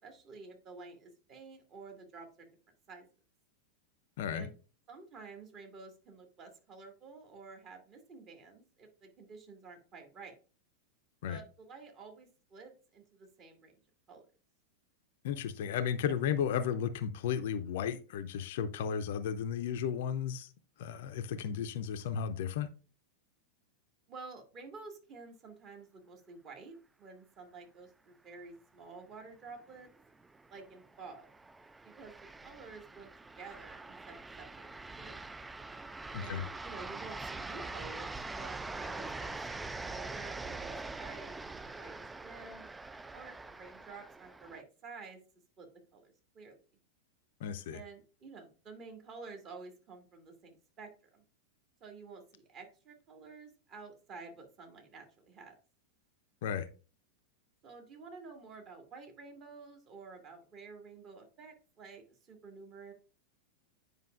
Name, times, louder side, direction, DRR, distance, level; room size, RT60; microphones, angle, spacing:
voice 1, 0.0-2.5 2.9-3.0 4.3-4.5 4.9-10.3 11.3-13.8 14.1-14.2 24.1-29.9 30.5-31.3 31.8-32.1 32.4-33.1 33.4-35.2 36.2-42.7 43.1-45.2 45.6-46.6 47.7-51.2 51.8-55.5 57.6-62.9, right 4 dB, 35° right, 2.1 m, -51 dB
voice 2, 4.2-4.5 11.2-11.4 15.2-20.5 20.8-22.7 36.1-36.4 47.4-47.8 56.4-56.7, left 8 dB, 55° left, 0.5 m, -34 dB
sound 1, 29.7-44.6, right 3 dB, 10° right, 0.3 m, -44 dB
9.5 x 5.1 x 2.4 m
figure-of-eight pair, 90°, 0 cm